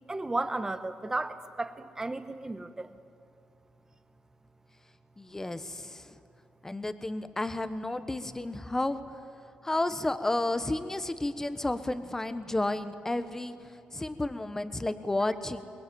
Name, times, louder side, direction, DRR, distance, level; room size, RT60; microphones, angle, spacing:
voice 1, 0.1-3.0, right 2 dB, 20° right, 10 dB, 1.3 m, -34 dB
voice 2, 5.2-6.2 6.6-9.0 9.6-13.5 13.9-15.6, left 2 dB, 15° left, 11 dB, 1.3 m, -32 dB
23.0 x 21.0 x 9.5 m, 2.4 s
cardioid pair, 95°, 3 cm